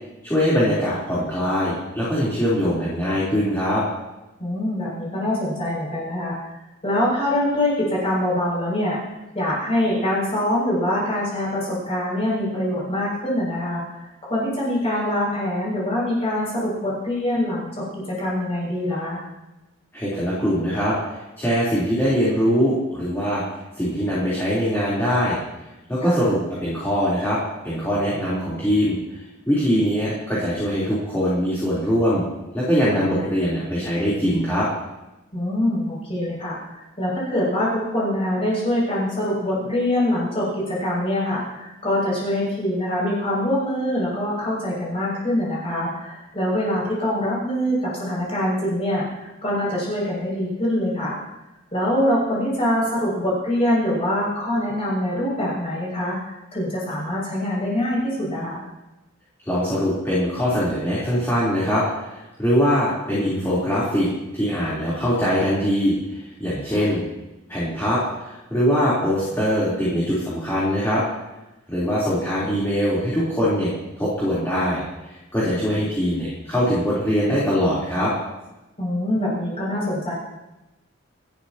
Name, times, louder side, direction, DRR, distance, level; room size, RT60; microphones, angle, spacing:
voice 1, 0.2-3.8 19.9-23.4 23.8-25.4 25.9-27.4 27.6-29.2 29.5-32.2 32.5-34.7 59.4-64.1 64.3-67.0 67.5-71.0 71.7-73.7 74.0-78.1, equal, 10° left, -9 dB, 3.9 m, -22 dB
voice 2, 4.4-6.4 6.8-9.0 9.3-19.2 26.0-26.2 35.3-51.2 51.7-58.6 66.7-66.8 75.4-75.6 78.8-80.1, left 1 dB, 30° left, -6 dB, 7.1 m, -24 dB
26.5 x 12.5 x 3.0 m, 1.0 s
head